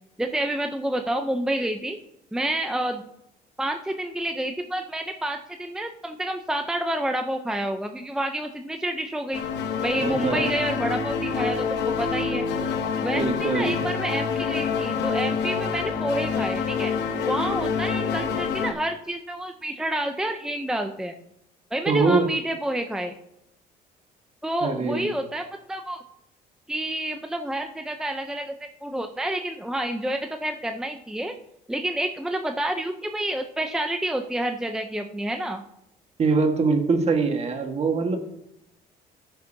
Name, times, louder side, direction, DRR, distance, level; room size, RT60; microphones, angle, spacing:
voice 1, 0.2-2.0 2.3-3.0 3.6-9.4 9.8-12.5 13.0-16.9 17.2-21.2 21.7-23.1 24.4-26.0 26.7-28.5 28.8-31.3 31.7-35.6, right 1 dB, 5° right, 5 dB, 0.5 m, -29 dB
sound 1, 9.3-18.7, left 6 dB, 90° left, 1.1 m, -27 dB
voice 2, 10.0-10.5 13.1-13.8 21.9-22.3 24.6-25.1 36.2-38.2, right 4 dB, 40° right, 5 dB, 1.5 m, -23 dB
13.5 x 6.7 x 2.7 m, 0.81 s
cardioid pair, 110°, 17 cm